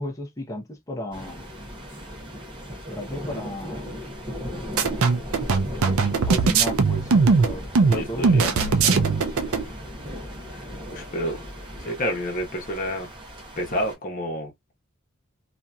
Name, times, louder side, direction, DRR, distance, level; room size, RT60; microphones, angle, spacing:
voice 1, 0.0-1.5 2.9-3.9 6.3-9.3, equal, 15° left, 0.7 m, -34 dB
sound 1, 1.1-13.9, equal, 20° right, 0.8 m, -37 dB
sound 2, 4.8-9.6, right 4 dB, 65° right, 0.5 m, -20 dB
voice 2, 7.8-8.4 10.5-10.6 10.9-11.4 11.8-13.1 13.6-14.5, equal, 40° left, 1.0 m, -29 dB
2.8 x 2.5 x 2.2 m
head